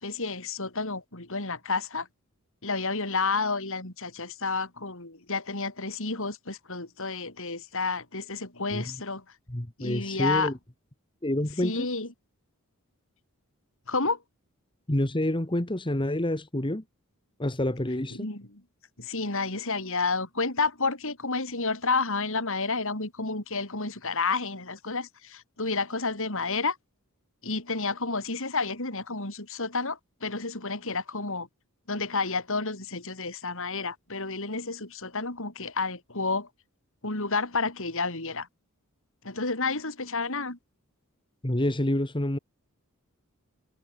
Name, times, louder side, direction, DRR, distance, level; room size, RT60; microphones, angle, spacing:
voice 1, 0.0-2.1 2.6-9.2 9.8-10.5 11.6-12.1 13.9-14.2 18.1-18.6 19.0-26.8 27.4-31.5 31.9-36.5 37.0-38.5 39.2-40.6, left 3 dB, 65° left, 5.7 m, -30 dB
voice 2, 9.5-10.5 11.2-11.9 14.9-16.8 17.4-18.3 41.4-42.4, left 1 dB, 20° left, 1.8 m, -28 dB
head